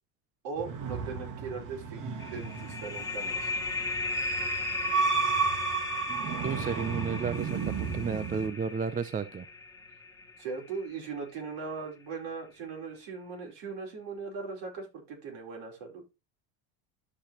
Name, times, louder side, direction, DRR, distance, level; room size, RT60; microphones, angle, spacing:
voice 1, 0.4-3.5 10.4-16.0, right 5 dB, 60° right, 5.0 m, -39 dB
sound 1, 0.6-8.5, right 5 dB, 40° right, 1.8 m, -33 dB
sound 2, 2.2-11.5, left 4 dB, 10° left, 1.8 m, -37 dB
voice 2, 6.1-9.5, right 5 dB, 20° right, 0.5 m, -33 dB
13.0 x 5.2 x 3.0 m
supercardioid pair, 105°, 47 cm